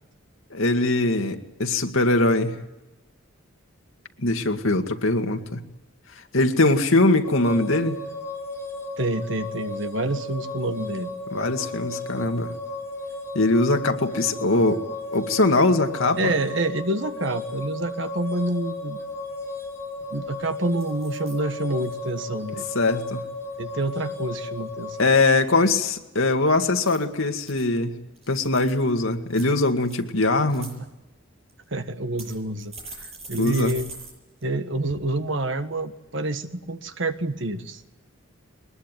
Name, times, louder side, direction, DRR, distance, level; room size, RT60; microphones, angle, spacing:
voice 1, 0.5-2.5 4.2-5.6 6.3-8.0 11.3-12.5 13.3-14.8 15.1-16.3 22.7-23.2 25.0-27.9 28.3-30.7 33.4-33.7, left 2 dB, 80° left, 5 dB, 2.1 m, -21 dB
sound 1, 7.2-25.0, left 2 dB, 15° left, 5.3 m, -34 dB
voice 2, 9.0-11.1 16.2-19.0 20.1-22.6 23.6-25.1 31.7-33.9 34.4-37.8, right 2 dB, 65° right, 9 dB, 1.6 m, -28 dB
sound 2, 19.6-19.7 20.0-20.3 20.8-21.4 21.8-22.2 26.7-27.6 28.2-28.8 29.3-30.0 30.4-30.7 31.5-31.6 32.2-34.1 34.4-34.5 34.9-35.0, right 3 dB, 30° right, 8.0 m, -42 dB
22.5 x 20.5 x 9.2 m, 1.0 s
head